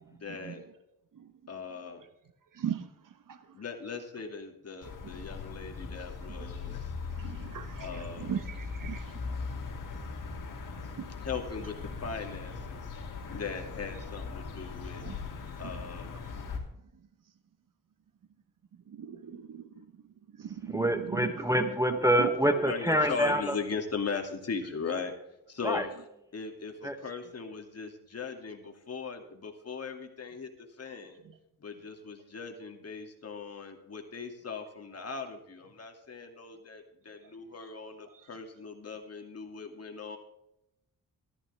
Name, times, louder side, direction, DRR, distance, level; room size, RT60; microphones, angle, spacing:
voice 1, 0.2-0.6 1.5-2.0 3.5-6.9 7.8-8.4 11.1-15.0 15.6-16.2 22.6-25.1 25.5-25.9 26.3-31.2 31.6-40.2, left 5 dB, 45° left, 2.5 m, -39 dB
sound 1, 4.8-16.6, left 4 dB, 60° left, 2.8 m, -40 dB
voice 2, 7.2-7.9 8.2-9.0 11.0-11.1 15.0-15.2 19.0-19.6 20.6-21.3 22.2-22.3, right 8 dB, 60° right, 1.1 m, -37 dB
voice 3, 20.7-23.5 25.6-25.8 26.8-27.0, equal, 10° right, 1.0 m, -26 dB
14.0 x 13.5 x 3.5 m
cardioid pair, 95°, 36 cm